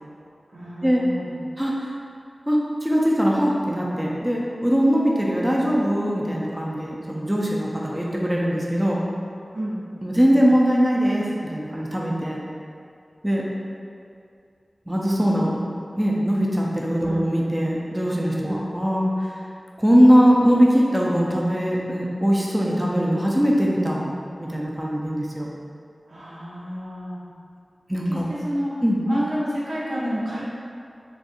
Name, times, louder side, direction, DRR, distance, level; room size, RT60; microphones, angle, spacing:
voice 1, 0.5-1.3 9.5-9.8 17.0-17.3 18.4-18.7 26.1-27.2 28.1-28.7 29.0-30.4, equal, 85° right, -8 dB, 0.7 m, -29 dB
voice 2, 1.6-1.9 2.5-9.0 10.0-12.4 13.2-13.4 14.9-15.5 16.0-19.3 19.8-24.1 24.4-25.5 27.9-28.2 28.8-29.0, equal, 15° right, -4 dB, 0.4 m, -21 dB
4.1 x 2.3 x 2.6 m, 2.4 s
wide cardioid pair, 75°, 0 cm